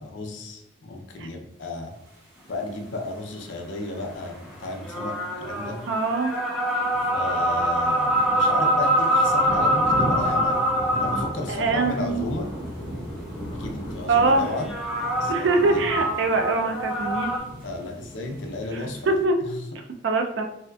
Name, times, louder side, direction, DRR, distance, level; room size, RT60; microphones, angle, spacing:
voice 1, 0.0-1.9 2.5-5.8 7.1-10.6 10.9-12.5 13.6-14.7 15.1-15.8 17.6-19.7, left 2 dB, 70° left, 3 dB, 0.5 m, -34 dB
sound 1, 2.1-19.2, equal, 40° right, 1.2 m, -38 dB
sound 2, 4.6-11.4 14.3-17.4, equal, ahead, 0.4 m, -24 dB
voice 2, 5.9-6.3 11.5-12.2 14.1-14.4 15.3-17.3 18.7-19.4 20.0-20.4, right 3 dB, 70° right, 4 dB, 0.4 m, -23 dB
3.2 x 2.8 x 2.3 m, 0.81 s
head